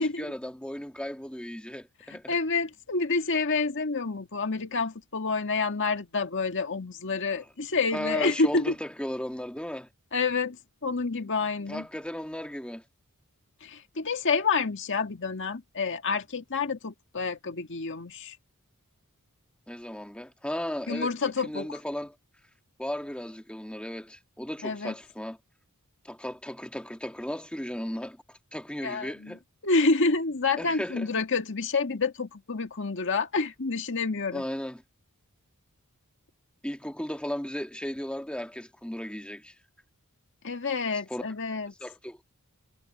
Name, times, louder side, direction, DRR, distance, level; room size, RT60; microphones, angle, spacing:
voice 1, 0.0-2.4 7.3-7.5 7.9-9.9 11.7-12.8 19.7-21.2 21.4-22.2 22.8-25.4 26.0-29.4 30.6-31.1 34.3-34.8 36.6-39.6 41.1-41.2 41.8-42.2, equal, 5° left, 2.0 m, -36 dB
voice 2, 2.3-8.7 10.1-10.6 10.8-11.8 13.6-18.4 20.9-21.8 24.6-24.9 28.8-29.4 29.6-34.4 40.4-41.7, left 4 dB, 55° left, 1.8 m, -28 dB
head